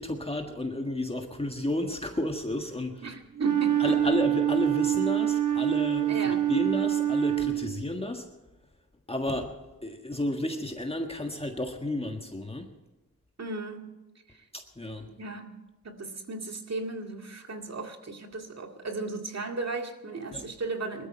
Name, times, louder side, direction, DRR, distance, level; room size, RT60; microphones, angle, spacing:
voice 1, 0.0-3.2 3.8-6.1 6.5-8.3 9.1-9.5 9.8-12.7 14.5-15.1 20.3-20.4, left 1 dB, 15° left, 4 dB, 1.6 m, -32 dB
voice 2, 3.0-3.9 6.1-6.5 13.4-13.9 14.3-14.5 15.2-21.1, right 3 dB, 50° right, 4 dB, 2.2 m, -35 dB
Wind instrument woodwind instrument, 3.4-7.9, right 12 dB, 65° right, 1.0 m, -26 dB
20.0 x 13.0 x 4.5 m, 1.1 s
cardioid pair, 65°, 34 cm